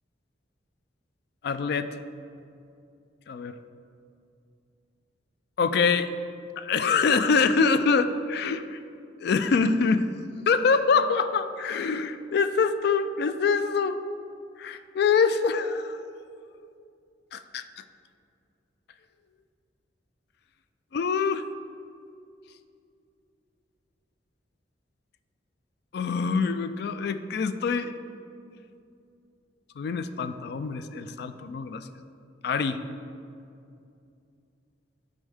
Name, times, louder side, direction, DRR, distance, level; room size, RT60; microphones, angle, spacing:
voice 1, 1.4-1.9 3.3-3.5 5.6-6.1 6.6-8.8 9.2-10.1 10.5-14.0 14.6-16.0 17.3-17.8 20.9-21.4 25.9-27.9 29.8-31.9 32.4-32.8, left 5 dB, 60° left, 11 dB, 0.3 m, -25 dB
9.6 x 4.4 x 3.5 m, 2.5 s
head